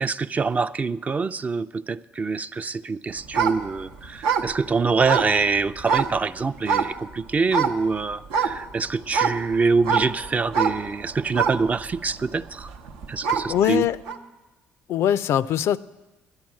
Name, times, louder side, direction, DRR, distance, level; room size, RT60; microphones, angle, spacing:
voice 1, 0.0-12.7 13.1-13.8, right 4 dB, 30° right, 0.4 m, -25 dB
sound 1, 3.2-6.2 6.6-7.1 7.4-7.8 8.3-13.6 14.1-14.2, right 6 dB, 85° right, 0.8 m, -25 dB
voice 2, 13.5-14.0 14.9-15.8, left 10 dB, 70° left, 0.4 m, -21 dB
10.5 x 10.0 x 7.5 m
supercardioid pair, 65°, 5 cm